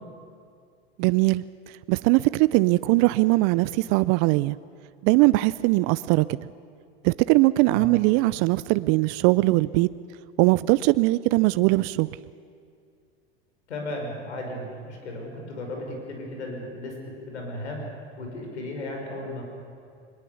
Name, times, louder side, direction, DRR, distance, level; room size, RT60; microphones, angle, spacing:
voice 1, 1.0-1.4 1.9-4.6 5.0-6.2 7.0-9.9 10.4-12.1, right 21 dB, 45° right, 17 dB, 0.5 m, -20 dB
voice 2, 13.7-16.9 17.3-17.8 18.2-19.4, left 1 dB, 80° left, 1 dB, 5.8 m, -35 dB
22.0 x 20.5 x 7.0 m, 2.3 s
hypercardioid pair, 95°, 33 cm